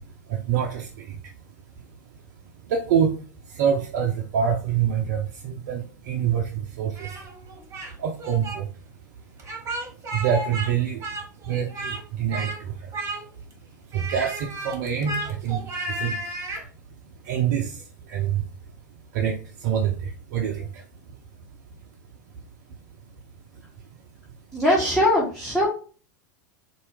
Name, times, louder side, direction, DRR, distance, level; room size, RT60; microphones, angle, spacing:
voice 1, 0.0-1.3 1.8-1.9 2.1-2.2 2.7-7.4 8.0-8.8 9.4-11.1 11.4-13.0 13.8-16.3 17.2-18.7 19.1-20.9 23.5-23.6, right 8 dB, 55° right, 2 dB, 0.5 m, -27 dB
Speech, 7.0-7.9 8.2-8.6 9.4-10.7 11.0-12.0 12.3-12.6 12.9-13.5 13.9-16.7, right 1 dB, 30° right, 1.2 m, -33 dB
voice 2, 24.5-25.7, left 1 dB, 5° left, -6 dB, 1.3 m, -21 dB
4.3 x 2.5 x 3.2 m, 0.38 s
figure-of-eight pair, 85°, 10 cm